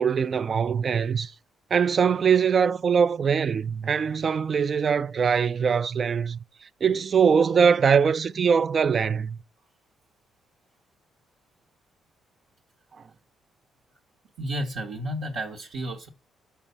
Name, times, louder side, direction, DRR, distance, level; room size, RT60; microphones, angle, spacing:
voice 1, 0.0-1.3 1.7-6.4 6.8-9.4, right 6 dB, 50° right, 0.3 m, -22 dB
voice 2, 14.4-16.1, equal, 80° right, 0.9 m, -32 dB
6.0 x 4.5 x 5.3 m
supercardioid pair, 65°, 0 cm